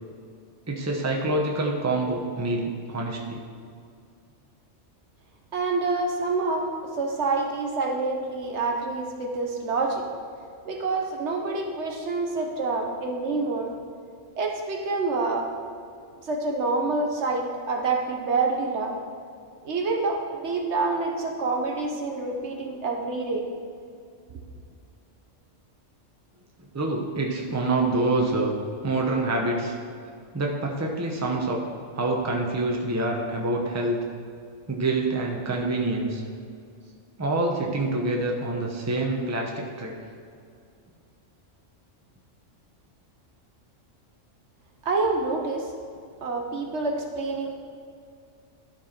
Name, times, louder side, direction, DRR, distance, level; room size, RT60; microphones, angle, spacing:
voice 1, 0.7-3.4 26.7-28.5 28.8-29.7 30.3-31.6 31.9-34.0 34.7-36.2 37.2-40.0, right 2 dB, 15° right, 0 dB, 0.8 m, -26 dB
voice 2, 5.5-6.7 7.0-10.1 10.6-13.7 14.4-15.5 16.2-18.9 19.6-23.5 44.8-45.7 46.2-47.5, right 3 dB, 65° right, 2 dB, 1.2 m, -27 dB
12.0 x 4.5 x 4.4 m, 2.4 s
omnidirectional pair, 1.3 m